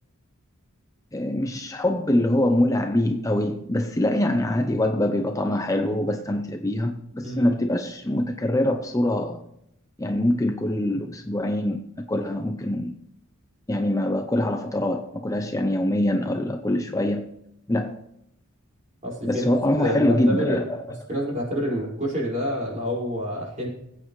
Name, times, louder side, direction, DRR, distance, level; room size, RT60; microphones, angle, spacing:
voice 1, 1.1-9.4 10.0-12.9 13.7-17.3 17.7-18.0 19.3-20.8, left 1 dB, 15° left, 0.6 m, -24 dB
voice 2, 19.0-19.4 19.8-20.6 21.1-23.7, equal, 35° right, 5.0 m, -28 dB
19.5 x 8.7 x 3.1 m
head